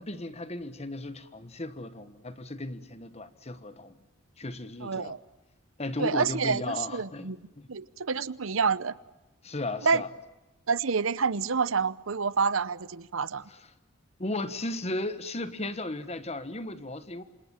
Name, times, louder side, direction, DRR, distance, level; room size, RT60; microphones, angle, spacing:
voice 1, 0.0-4.0 4.4-5.2 5.8-7.7 9.4-10.1 13.5-13.6 14.2-17.2, left 2 dB, 30° left, 1.4 m, -35 dB
voice 2, 4.8-5.2 6.0-7.4 7.7-8.9 9.8-10.0 10.7-13.5, right 5 dB, 70° right, 0.9 m, -28 dB
28.0 x 26.5 x 7.3 m
head